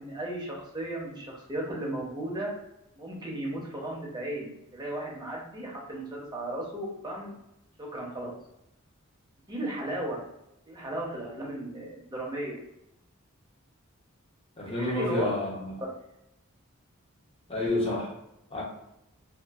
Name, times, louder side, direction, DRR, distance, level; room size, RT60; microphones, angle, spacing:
voice 1, 0.0-2.5 3.0-7.3 7.8-8.3 9.5-10.2 10.7-12.6 14.6-15.3, right 1 dB, 20° right, -3 dB, 0.7 m, -35 dB
voice 2, 14.6-15.8 17.5-18.1 18.5-18.6, left 1 dB, 25° left, -4 dB, 0.8 m, -29 dB
2.6 x 2.4 x 2.4 m, 0.86 s
head